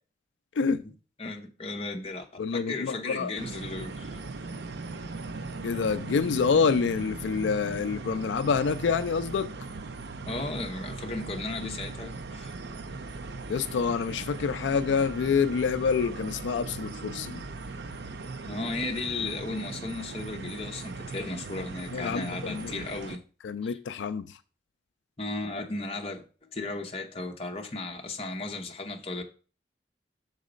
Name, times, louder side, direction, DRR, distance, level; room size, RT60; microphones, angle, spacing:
voice 1, 1.2-4.2 10.3-12.5 18.5-23.2 23.6-23.8 25.2-26.2 26.5-29.2, left 2 dB, 30° left, 0.8 m, -35 dB
voice 2, 2.4-3.3 5.6-9.5 13.5-17.4 21.9-22.7 23.4-24.4, left 5 dB, 85° left, 0.4 m, -27 dB
sound 1, 3.4-23.2, right 3 dB, 70° right, 0.5 m, -39 dB
6.4 x 4.0 x 5.0 m
head